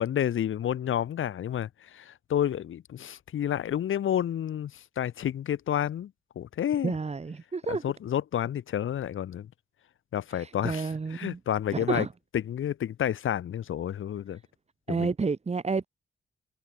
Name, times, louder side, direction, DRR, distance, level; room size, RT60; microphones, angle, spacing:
voice 1, 0.0-7.0 7.7-9.5 10.1-12.1 12.3-14.4 14.9-15.1, left 10 dB, 80° left, 4.3 m, -30 dB
voice 2, 6.8-7.8 10.3-11.4 11.7-12.1 14.9-15.9, right 4 dB, 30° right, 4.8 m, -30 dB
cardioid pair, 110°, 21 cm